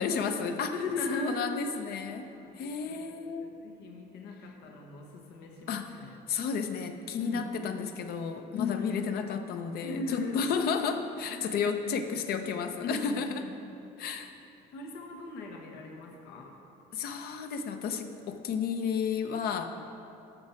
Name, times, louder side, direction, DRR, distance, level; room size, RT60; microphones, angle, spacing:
voice 1, 0.0-0.7 1.1-2.3 2.6-3.5 5.7-5.9 6.3-13.4 14.0-14.3 16.9-19.9, left 6 dB, 65° left, 7 dB, 0.8 m, -32 dB
voice 2, 0.7-1.4 2.2-6.1 7.2-7.5 8.5-9.0 9.8-10.4 11.3-11.6 12.8-13.5 14.7-16.6, left 3 dB, 90° left, 1 dB, 1.3 m, -38 dB
13.5 x 5.9 x 4.5 m, 2.7 s
cardioid pair, 110°, 17 cm